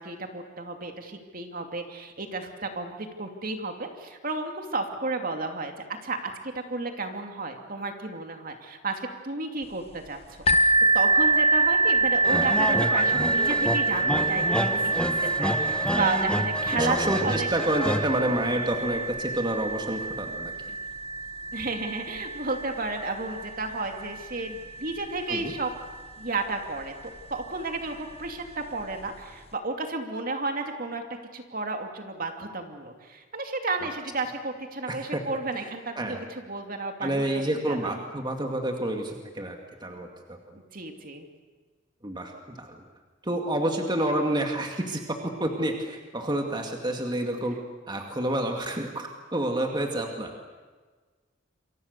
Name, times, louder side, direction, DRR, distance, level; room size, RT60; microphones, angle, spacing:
voice 1, 0.0-5.7 6.0-10.2 10.5-17.0 17.2-17.5 21.5-25.7 26.2-26.9 27.3-31.0 31.3-37.9 40.7-41.3, right 3 dB, 50° right, 4 dB, 2.7 m, -32 dB
sound 1, 10.5-26.0 26.8-26.9 27.4-27.5, right 3 dB, 30° left, 1.3 m, -26 dB
sound 2, 12.2-18.8, equal, 5° left, 1.4 m, -30 dB
voice 2, 16.7-20.7 25.3-25.5 34.9-35.2 35.6-36.2 37.0-40.6 42.0-42.8 43.2-47.6 47.9-50.3, right 1 dB, 25° right, 3 dB, 2.2 m, -29 dB
28.5 x 24.0 x 6.8 m, 1.4 s
head